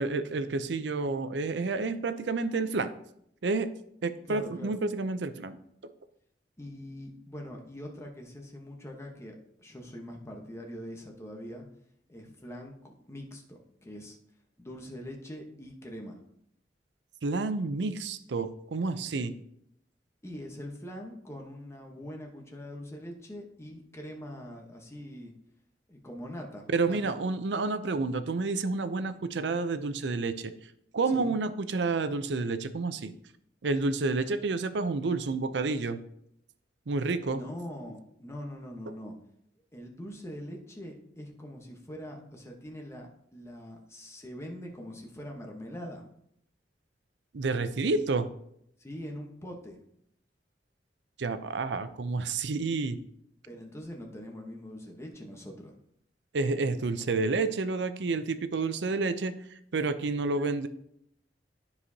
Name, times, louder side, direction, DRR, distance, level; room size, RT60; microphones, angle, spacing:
voice 1, 0.0-2.9 3.4-3.7 4.0-5.6 17.2-19.3 26.7-30.5 30.9-33.1 33.6-36.0 36.9-37.4 47.3-48.3 51.2-53.0 56.3-59.3 59.7-60.7, right 3 dB, 75° right, 11 dB, 0.5 m, -29 dB
voice 2, 4.3-4.8 6.6-11.6 12.1-14.2 14.6-16.2 20.2-25.3 25.9-27.1 31.1-31.3 37.3-39.1 39.7-46.0 48.8-49.8 53.5-55.7, equal, 15° left, 1 dB, 1.0 m, -43 dB
12.5 x 4.8 x 2.8 m, 0.72 s
head